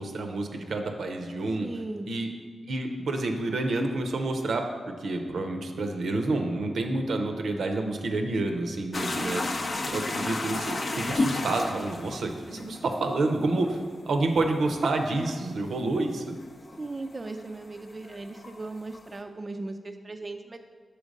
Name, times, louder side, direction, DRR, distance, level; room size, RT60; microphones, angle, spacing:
voice 1, 0.0-1.7 2.1-2.3 2.7-4.7 5.0-9.4 9.9-13.8 14.1-16.3, right 2 dB, 80° right, 4 dB, 0.6 m, -28 dB
voice 2, 1.6-2.1 9.2-9.9 16.8-20.6, right 2 dB, 40° right, 5 dB, 0.3 m, -38 dB
sound 1, 8.9-17.5 17.7-19.1, left 2 dB, 55° left, 0.5 m, -32 dB
5.1 x 4.4 x 5.2 m, 1.5 s
cardioid pair, 55°, 0 cm